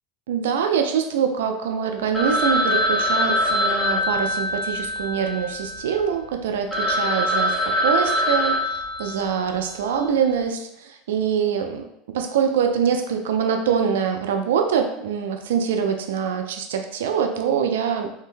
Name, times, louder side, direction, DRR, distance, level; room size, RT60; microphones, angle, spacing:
voice 1, 0.3-11.8 12.1-18.1, right 7 dB, 80° right, 5 dB, 0.3 m, -24 dB
Telephone, 2.1-5.9 6.4-6.5 6.7-9.6, equal, 5° left, 1.0 m, -23 dB
3.7 x 2.1 x 2.5 m, 0.78 s
hypercardioid pair, 85°, 0 cm